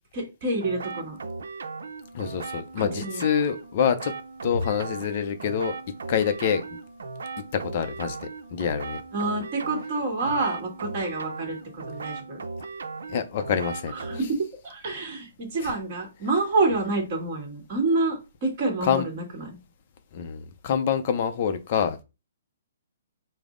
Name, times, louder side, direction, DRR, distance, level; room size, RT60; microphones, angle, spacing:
voice 1, 0.1-1.2 2.8-3.2 9.1-12.4 13.9-14.3 14.6-19.6, right 3 dB, 30° right, 1.4 m, -28 dB
sound 1, 0.6-14.2, right 4 dB, 85° right, 0.5 m, -37 dB
voice 2, 2.1-4.1 4.4-5.8 6.1-6.6 7.5-9.0 13.1-13.9 15.6-15.7 18.8-19.0 20.1-22.0, left 7 dB, 35° left, 0.5 m, -26 dB
5.1 x 2.0 x 3.7 m
hypercardioid pair, 175°, 0 cm